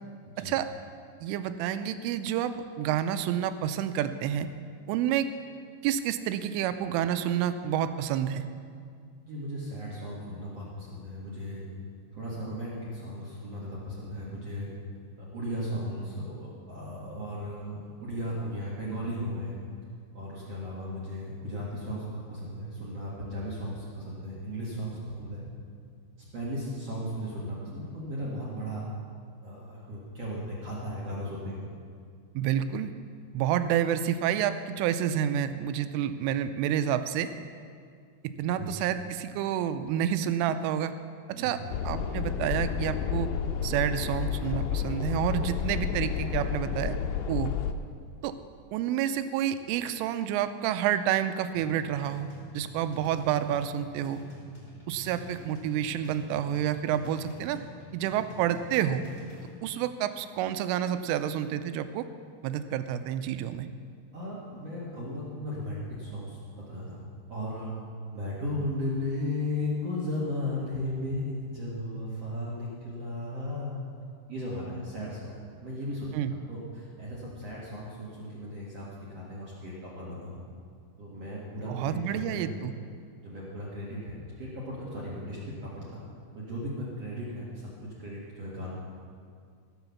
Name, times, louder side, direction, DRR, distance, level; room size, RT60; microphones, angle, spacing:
voice 1, 1.2-4.5 4.9-5.3 5.8-8.5 32.4-32.9 33.3-37.3 38.4-40.9 41.4-41.6 41.8-43.3 43.6-46.9 47.3-47.5 48.2-48.3 48.7-52.3 52.5-54.2 54.9-57.6 57.9-59.0 59.6-62.1 62.4-63.7 76.1-76.3 81.7-82.8, right 10 dB, 85° right, 11 dB, 3.1 m, -29 dB
voice 2, 9.3-11.6 12.1-14.7 15.3-19.6 20.1-25.4 26.3-28.8 29.4-31.5 38.6-38.7 41.3-41.7 64.1-66.4 66.7-67.0 67.3-67.7 68.1-73.8 74.3-75.4 75.6-76.1 76.5-80.4 81.0-82.6 83.2-86.0 86.3-88.7, left 1 dB, 65° right, -6 dB, 1.6 m, -36 dB
sound 1, 41.7-47.7, left 8 dB, 90° left, 2.5 m, -31 dB
sound 2, 51.5-59.5, left 4 dB, 15° left, 2.6 m, -47 dB
15.5 x 7.1 x 7.0 m, 2.2 s
omnidirectional pair, 5.7 m